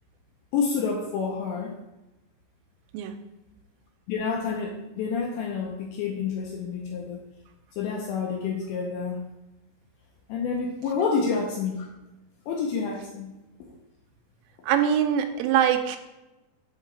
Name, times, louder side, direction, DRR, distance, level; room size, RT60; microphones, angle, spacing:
voice 1, 0.5-1.7 4.1-7.2 7.8-9.2 10.3-11.9 12.5-13.3 13.7-13.8, left 5 dB, 80° left, 0 dB, 2.6 m, -28 dB
voice 2, 14.6-16.0, right 9 dB, 85° right, 7 dB, 3.2 m, -23 dB
7.2 x 5.5 x 3.2 m, 1.0 s
omnidirectional pair, 5.8 m